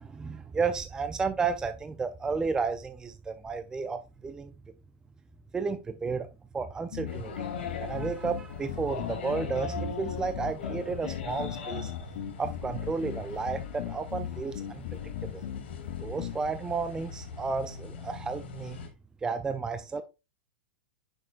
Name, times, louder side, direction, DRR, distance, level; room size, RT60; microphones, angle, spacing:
voice 1, 0.0-4.5 5.5-6.3 6.5-7.5 7.8-11.9 12.4-14.8 15.3-15.5 16.0-18.8 19.2-20.0, right 4 dB, 10° right, 10 dB, 0.5 m, -32 dB
sound 1, 6.9-16.4, left 11 dB, 60° left, 0.7 m, -38 dB
sound 2, 7.1-18.9, left 5 dB, 80° left, 3.0 m, -41 dB
9.0 x 6.3 x 2.4 m, 0.27 s
hypercardioid pair, 135°, 6 cm